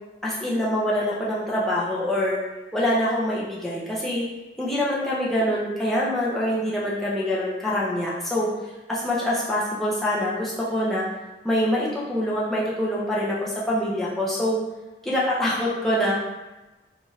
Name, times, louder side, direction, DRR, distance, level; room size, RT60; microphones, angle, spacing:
voice 1, 0.2-2.4 2.7-4.3 4.6-8.5 8.9-11.0 11.4-14.6 15.0-16.2, left 1 dB, ahead, -7 dB, 0.5 m, -25 dB
2.6 x 2.4 x 3.0 m, 1.1 s
head